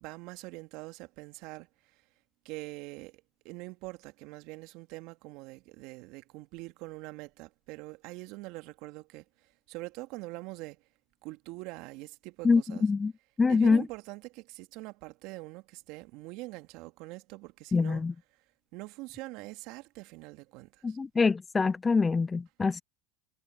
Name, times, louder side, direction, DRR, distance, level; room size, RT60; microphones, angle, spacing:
voice 1, 0.0-2.0 2.4-9.2 9.7-10.8 11.2-12.9 13.5-18.1 18.7-21.0, right 22 dB, 60° right, 2.1 m, -44 dB
voice 2, 12.4-13.1 13.4-13.8 17.7-18.1 20.8-22.8, left 4 dB, 20° left, 0.3 m, -25 dB
hypercardioid pair, 90°, 0 cm